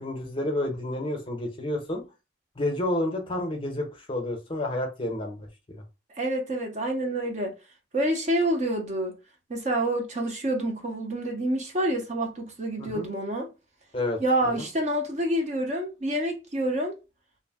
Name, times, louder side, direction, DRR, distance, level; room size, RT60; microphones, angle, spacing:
voice 1, 0.0-2.0 2.6-5.8 12.8-13.0 13.9-14.2 14.6-14.7, left 1 dB, 25° left, 0.7 m, -30 dB
voice 2, 6.2-7.5 7.9-9.2 9.5-13.5 14.2-17.0, right 1 dB, 35° right, 0.6 m, -27 dB
2.6 x 2.1 x 3.3 m
head